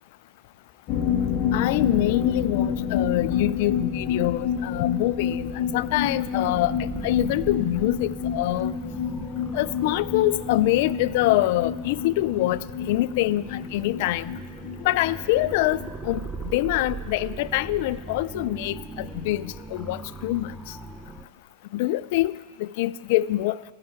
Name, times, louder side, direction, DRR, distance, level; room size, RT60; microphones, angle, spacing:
sound 1, 0.9-16.3 16.5-16.6 16.9-17.0, left 7 dB, 40° left, 1.1 m, -29 dB
voice 1, 1.5-8.7 9.5-14.3 14.8-16.2 16.5-20.8 21.7-23.6, left 16 dB, 60° left, 17 dB, 0.3 m, -25 dB
sound 2, 5.4-21.3, right 3 dB, 10° right, 0.5 m, -39 dB
13.5 x 5.7 x 9.0 m, 1.5 s
supercardioid pair, 150°, 0 cm